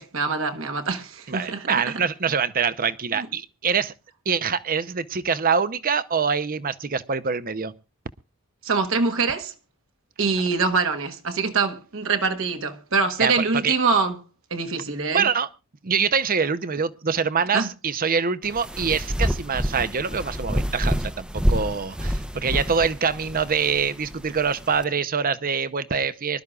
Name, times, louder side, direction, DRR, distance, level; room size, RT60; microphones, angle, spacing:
voice 1, 0.0-2.0 3.1-3.3 8.6-9.5 10.2-14.2 14.5-15.3 17.5-17.7, right 4 dB, 65° right, 1.4 m, -24 dB
voice 2, 1.3-3.9 4.3-7.7 13.2-13.7 15.1-15.5 15.8-26.4, right 6 dB, 45° right, 0.8 m, -25 dB
sound 1, 18.4-24.8, equal, 5° right, 0.7 m, -28 dB
24.5 x 12.5 x 2.4 m
head